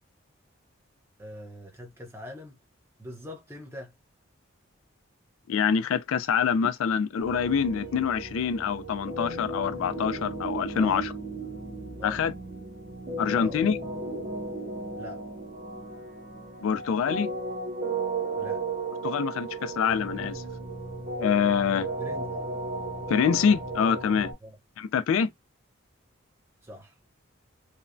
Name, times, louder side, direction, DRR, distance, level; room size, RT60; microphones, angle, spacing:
voice 1, 1.2-2.6 3.0-3.9 10.8-11.0 12.0-12.2 13.4-13.6 14.9-15.2 18.4-18.6 22.0-22.3 24.4-24.5 26.6-26.9, left 1 dB, 10° right, 0.7 m, -42 dB
voice 2, 5.5-11.1 12.0-12.3 13.2-13.8 16.6-17.3 19.0-20.4 21.2-21.9 23.1-24.3 24.8-25.3, left 7 dB, 80° left, 0.3 m, -25 dB
sound 1, 7.2-24.3, right 3 dB, 40° right, 1.0 m, -35 dB
3.1 x 2.1 x 2.5 m
head